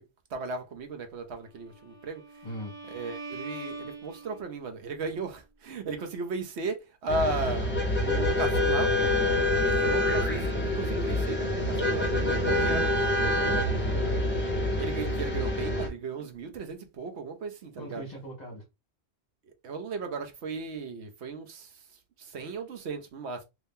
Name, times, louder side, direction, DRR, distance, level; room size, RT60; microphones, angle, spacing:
voice 1, 0.3-2.2 2.9-12.9 13.3-13.7 14.8-18.0 19.6-21.7 22.2-23.4, right 3 dB, 80° right, 1.1 m, -36 dB
Bowed string instrument, 1.6-4.7, right 3 dB, 20° right, 1.4 m, -42 dB
voice 2, 2.4-2.7 12.9-14.2 17.8-18.6, equal, 40° left, 1.0 m, -40 dB
sound 1, 7.1-15.9, left 1 dB, 10° left, 1.0 m, -26 dB
sound 2, 9.1-16.7, right 8 dB, 45° right, 0.6 m, -46 dB
2.9 x 2.7 x 3.5 m
omnidirectional pair, 1.1 m